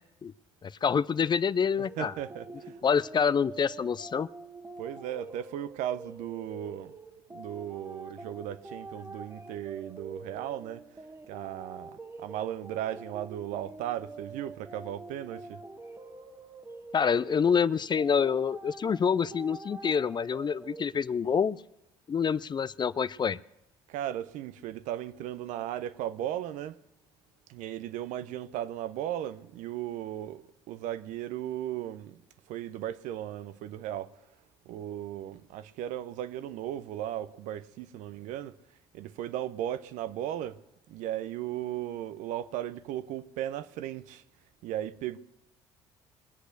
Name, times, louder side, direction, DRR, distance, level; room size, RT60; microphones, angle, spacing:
voice 1, 0.6-2.1 2.8-4.3 16.9-21.6 22.1-23.4, left 6 dB, 35° left, 0.5 m, -27 dB
sound 1, 1.8-20.8, right 3 dB, 20° right, 1.3 m, -46 dB
voice 2, 1.8-2.8 4.8-6.9 7.3-10.8 11.3-15.6 23.9-26.8 27.5-32.2 32.5-34.2 34.7-38.6 38.9-40.6 40.9-44.2 44.6-45.2, right 12 dB, 75° right, 0.7 m, -36 dB
22.0 x 8.1 x 6.6 m
hypercardioid pair, 60°, 13 cm